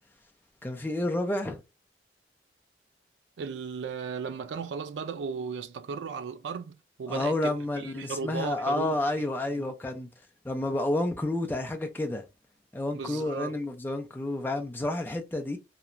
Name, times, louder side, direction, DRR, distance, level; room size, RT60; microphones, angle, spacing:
voice 1, 0.6-1.6 7.1-10.1 10.4-12.2 12.7-15.6, left 1 dB, 10° left, 0.4 m, -30 dB
voice 2, 3.4-8.9 9.6-9.7 12.9-13.6, right 5 dB, 90° right, 0.3 m, -36 dB
2.9 x 2.2 x 2.4 m
head